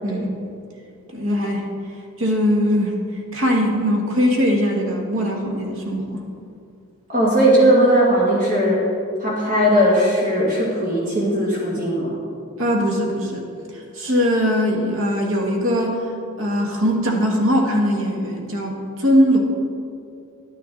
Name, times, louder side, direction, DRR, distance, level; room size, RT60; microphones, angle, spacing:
voice 1, 1.1-1.7 2.2-3.0 3.3-6.2 12.6-13.4 13.7-16.0 16.4-19.4, equal, 60° right, 0 dB, 1.5 m, -20 dB
voice 2, 7.1-8.8 9.2-12.1, equal, 40° right, -5 dB, 2.0 m, -18 dB
11.5 x 9.3 x 3.8 m, 2.5 s
head